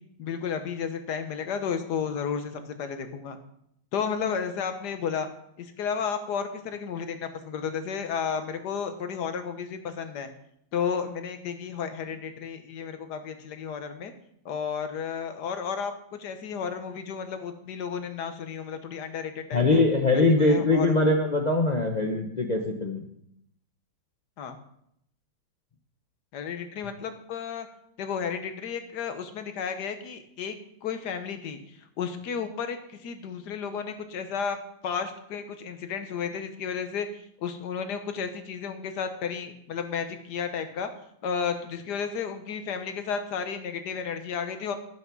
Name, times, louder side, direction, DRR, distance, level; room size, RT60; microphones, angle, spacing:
voice 1, 0.2-3.4 3.9-5.3 5.6-10.3 10.7-14.1 14.4-19.8 20.1-21.1 24.4-24.6 26.3-27.7 28.0-30.5 30.8-31.6 32.0-34.6 34.8-40.9 41.2-44.7, left 6 dB, 60° left, 8 dB, 1.5 m, -32 dB
voice 2, 19.5-23.1, left 2 dB, 85° left, 2 dB, 0.3 m, -22 dB
10.5 x 5.8 x 6.0 m, 0.73 s
omnidirectional pair, 2.2 m